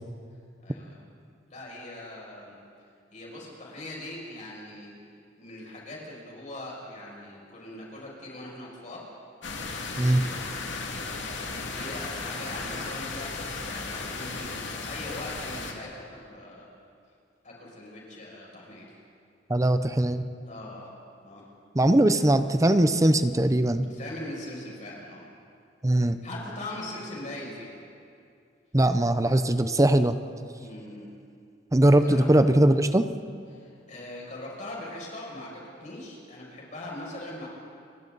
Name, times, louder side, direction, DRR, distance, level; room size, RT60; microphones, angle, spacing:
voice 1, 0.6-1.0 1.5-2.6 3.1-4.9 5.4-9.1 9.9-10.3 11.0-16.7 17.4-19.0 20.5-21.0 21.2-21.5 23.9-25.3 26.2-27.8 30.6-31.1 32.0-32.3 33.5-37.5, left 1 dB, 45° left, -4 dB, 6.8 m, -41 dB
sound 1, 9.4-15.7, left 3 dB, 80° left, 2.4 m, -35 dB
voice 2, 19.5-20.2 21.7-23.9 25.8-26.2 28.7-30.2 31.7-33.1, right 1 dB, 20° right, 10 dB, 0.7 m, -21 dB
30.0 x 23.5 x 4.1 m, 2.4 s
head